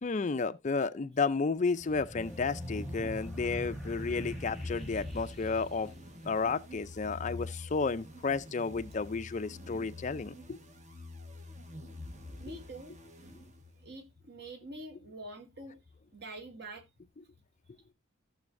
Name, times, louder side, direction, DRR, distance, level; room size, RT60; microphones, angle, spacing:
voice 1, 0.0-5.9 6.3-10.6, left 4 dB, 35° left, 0.4 m, -32 dB
sound 1, 1.8-6.7, equal, ahead, 1.4 m, -43 dB
sound 2, 2.2-13.9, left 2 dB, 35° right, 1.3 m, -47 dB
voice 2, 12.4-12.9 13.8-15.8 16.1-16.8, right 1 dB, 50° right, 2.2 m, -45 dB
15.0 x 7.1 x 2.6 m
head